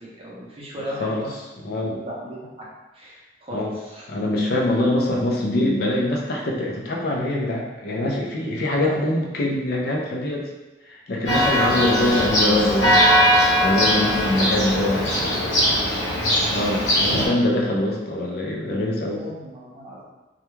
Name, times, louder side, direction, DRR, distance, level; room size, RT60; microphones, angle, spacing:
voice 1, 0.0-1.4 1.8-2.7 2.9-4.1 8.4-8.5 8.8-9.1 14.0-15.4 19.2-20.0, equal, 30° right, -5 dB, 0.6 m, -37 dB
voice 2, 0.8-1.2 1.6-2.0 3.5-3.7 4.1-10.5 10.9-13.2 13.6-15.2 16.5-19.2, left 1 dB, 55° left, -1 dB, 0.4 m, -24 dB
Church bell, 11.3-17.3, equal, 80° left, 0.9 m, -20 dB
2.2 x 2.2 x 3.0 m, 1.1 s
head